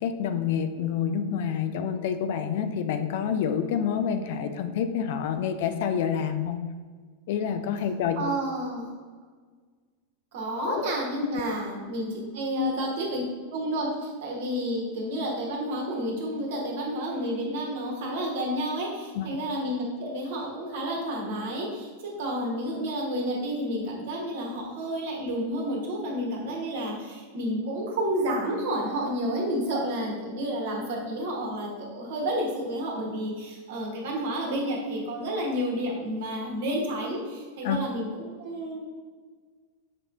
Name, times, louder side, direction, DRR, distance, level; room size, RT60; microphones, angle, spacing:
voice 1, 0.0-6.6 7.3-8.2 10.6-10.8 12.6-12.7 19.2-19.3 37.6-37.8, left 8 dB, 50° left, 8 dB, 0.3 m, -28 dB
voice 2, 8.1-8.9 10.3-13.2 13.5-38.8, right 1 dB, 55° right, -1 dB, 1.1 m, -30 dB
5.8 x 3.1 x 2.5 m, 1.5 s
figure-of-eight pair, 90°, 0 cm